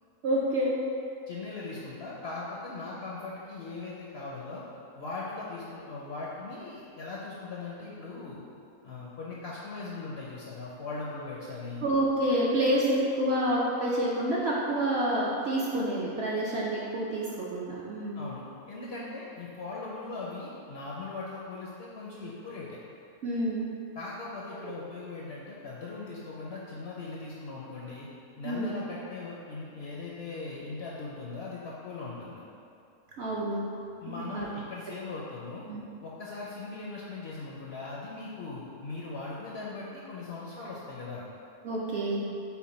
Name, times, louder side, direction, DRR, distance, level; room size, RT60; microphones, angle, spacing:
voice 1, 0.2-0.7 11.8-18.2 23.2-23.7 24.6-24.7 28.4-28.8 33.2-33.7 34.1-34.5 35.7-35.8 41.6-42.3, right 1 dB, 65° right, -5 dB, 0.6 m, -28 dB
voice 2, 1.3-4.6 4.9-8.4 8.8-11.9 18.1-22.8 24.0-28.1 28.4-32.4 34.0-35.7 36.0-41.2, left 3 dB, 65° left, -5 dB, 0.6 m, -39 dB
5.8 x 2.1 x 4.1 m, 2.6 s
omnidirectional pair, 1.5 m